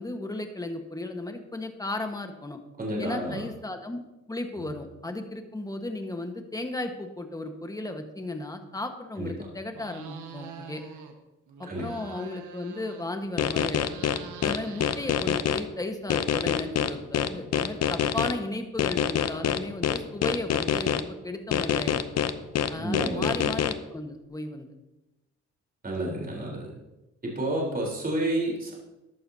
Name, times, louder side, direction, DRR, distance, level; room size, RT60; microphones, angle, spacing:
voice 1, 0.0-2.6 3.0-4.0 4.3-10.8 11.6-13.9 14.4-22.1 22.7-24.7, left 2 dB, 10° left, 5 dB, 1.4 m, -35 dB
voice 2, 2.8-3.5 4.5-4.6 9.2-9.3 11.7-11.9 22.7-23.4 25.8-26.7 27.2-28.7, right 1 dB, 30° right, -3 dB, 3.9 m, -30 dB
sound 1, 9.7-11.1 11.5-13.3 13.6-15.8, right 7 dB, 80° right, 1.5 m, -45 dB
sound 2, 13.4-15.6 16.1-18.3 18.8-21.0 21.5-23.7, left 9 dB, 60° left, 0.7 m, -25 dB
14.0 x 11.0 x 2.8 m, 1.0 s
cardioid pair, 90°, 30 cm